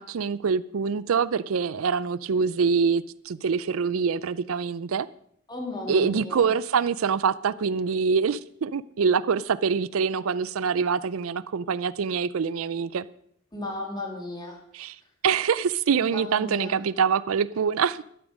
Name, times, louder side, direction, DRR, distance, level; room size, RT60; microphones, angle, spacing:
voice 1, 0.0-5.1 5.9-13.1 14.7-15.0 15.2-18.0, right 6 dB, 75° right, 0.4 m, -25 dB
voice 2, 5.5-6.5 13.5-14.6 16.0-16.8, left 2 dB, 20° left, 2.9 m, -35 dB
13.0 x 12.0 x 5.3 m
head